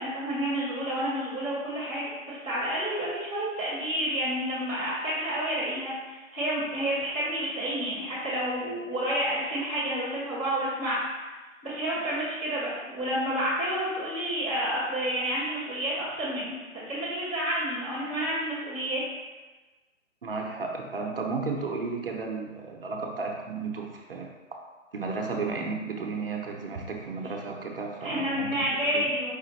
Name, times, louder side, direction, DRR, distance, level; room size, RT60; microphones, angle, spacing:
voice 1, 0.0-11.0 11.6-19.0 28.0-29.3, equal, 10° left, -17 dB, 0.4 m, -30 dB
voice 2, 20.2-24.3 24.9-28.6 28.9-29.0, right 4 dB, 45° right, 0 dB, 0.5 m, -33 dB
5.0 x 2.4 x 4.0 m, 1.3 s
figure-of-eight pair, 145°, 40 cm